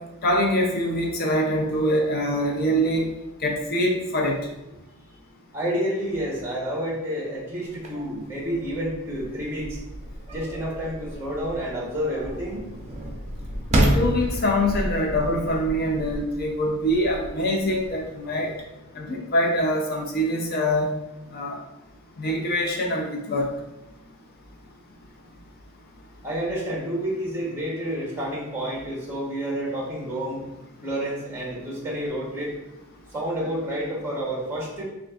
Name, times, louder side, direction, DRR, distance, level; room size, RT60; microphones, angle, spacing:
voice 1, 0.2-3.1 3.4-4.4 13.9-18.5 19.0-20.9 21.3-21.6 22.2-23.5, equal, 45° left, 0 dB, 0.5 m, -24 dB
voice 2, 5.5-9.8 10.3-12.6 26.2-30.4 30.8-32.5 33.1-34.8, equal, 10° right, -3 dB, 1.0 m, -29 dB
sound 1, 7.7-18.6, right 1 dB, 30° right, 0.5 m, -30 dB
5.9 x 2.4 x 2.4 m, 0.96 s
head